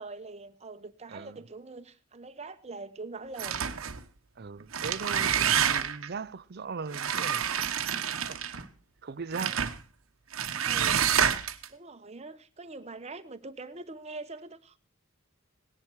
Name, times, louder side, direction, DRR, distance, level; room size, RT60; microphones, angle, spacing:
voice 1, 0.0-3.8 10.6-11.0 11.5-14.8, right 3 dB, 30° right, 1.0 m, -43 dB
voice 2, 1.1-1.4 4.4-7.5 7.8-8.7 9.0-9.6 10.9-11.1, right 5 dB, 50° right, 0.6 m, -39 dB
sound 1, 3.4-4.0 4.6-6.1 6.9-8.7 9.3-9.8 10.3-11.7, right 8 dB, 80° right, 1.1 m, -28 dB
18.0 x 10.5 x 4.6 m
head